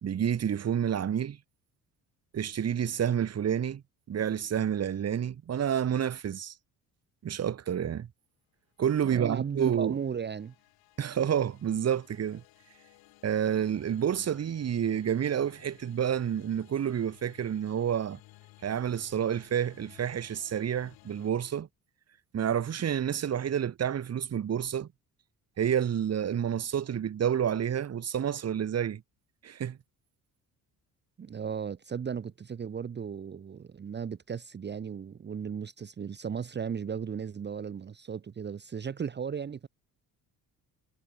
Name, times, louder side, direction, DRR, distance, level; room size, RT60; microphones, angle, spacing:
voice 1, 0.0-1.4 2.3-3.8 4.1-6.5 7.2-8.1 8.8-10.0 11.0-12.4 13.2-18.2 18.6-21.7 22.3-24.9 25.6-29.0 29.4-29.8, right 9 dB, 45° right, 1.8 m, -29 dB
voice 2, 9.1-10.5 31.2-39.7, right 7 dB, 30° right, 0.9 m, -36 dB
sound 1, 9.2-21.3, left 19 dB, 85° left, 4.8 m, -57 dB
cardioid pair, 85°, 35 cm